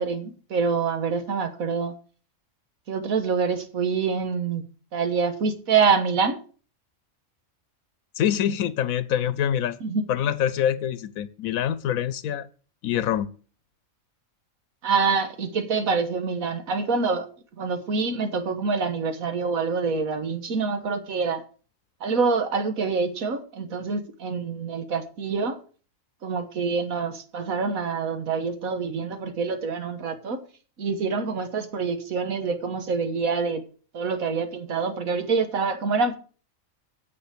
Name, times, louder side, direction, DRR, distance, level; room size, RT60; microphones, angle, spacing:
voice 1, 0.0-2.0 2.9-4.6 4.9-6.4 9.8-10.0 14.8-17.3 17.6-21.4 22.0-25.6 26.2-30.4 30.8-33.6 33.9-36.2, right 5 dB, 90° right, 1.7 m, -26 dB
voice 2, 8.2-9.8 10.1-12.5 12.8-13.3, left 10 dB, 90° left, 1.1 m, -25 dB
9.8 x 7.0 x 6.6 m
omnidirectional pair, 1.4 m